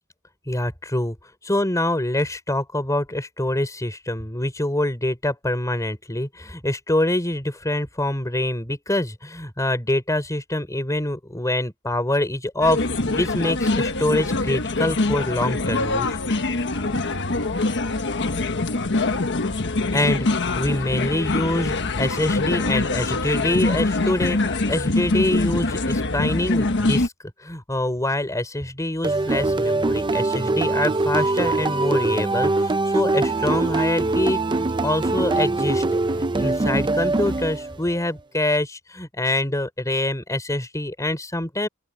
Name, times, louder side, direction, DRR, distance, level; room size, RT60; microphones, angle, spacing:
voice 1, 0.5-1.2 1.4-16.2 19.9-27.1 27.4-35.9 36.1-41.7, left 1 dB, 15° left, 3.9 m, -25 dB
sound 1, 12.6-27.1, left 2 dB, 55° left, 1.4 m, -24 dB
sound 2, 29.0-38.0, right 2 dB, 20° right, 0.6 m, -22 dB
open air
head